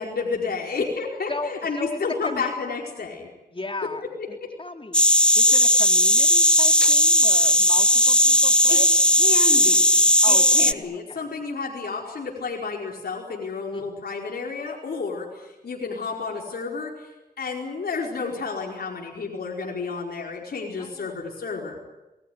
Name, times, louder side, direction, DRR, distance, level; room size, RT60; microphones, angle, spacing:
voice 1, 0.0-3.3 4.2-4.3 8.7-8.8 9.2-17.1 17.4-21.8, left 4 dB, 75° left, -1 dB, 4.9 m, -31 dB
voice 2, 1.3-2.5 3.5-4.0 4.3-5.0 5.3-8.8 10.2-10.7 11.1-11.2 13.7-14.0 20.8-21.3, left 2 dB, 35° left, 5 dB, 3.1 m, -36 dB
sound 1, 4.9-10.7, left 1 dB, 5° left, 1.0 m, -17 dB
27.5 x 20.5 x 9.5 m, 1.0 s
cardioid pair, 60°, 16 cm